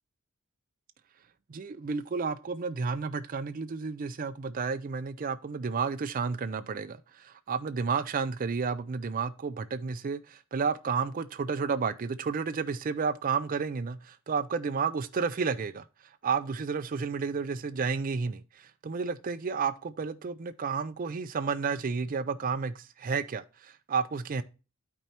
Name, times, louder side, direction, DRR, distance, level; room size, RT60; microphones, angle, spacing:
voice 1, 1.5-15.8 16.2-24.4, right 5 dB, 40° right, 0.4 m, -31 dB
12.0 x 4.4 x 2.8 m
head